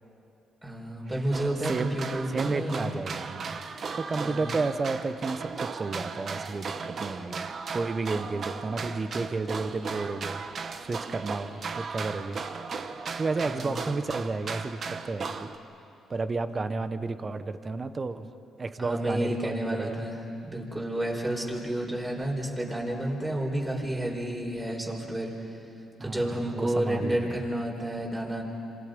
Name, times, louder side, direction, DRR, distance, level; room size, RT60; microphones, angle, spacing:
voice 1, 0.6-2.8 4.1-4.5 13.4-13.9 18.8-25.3 26.0-28.4, right 1 dB, 15° right, -1 dB, 5.0 m, -31 dB
sound 1, 1.3-15.6, right 5 dB, 50° right, 1.2 m, -36 dB
voice 2, 2.3-3.6 4.0-10.4 10.8-12.4 12.9-15.5 16.1-18.3 18.6-20.0 26.0-27.4, right 3 dB, 35° right, 11 dB, 1.1 m, -32 dB
27.5 x 27.0 x 5.4 m, 2.8 s
cardioid pair, 90°, 0 cm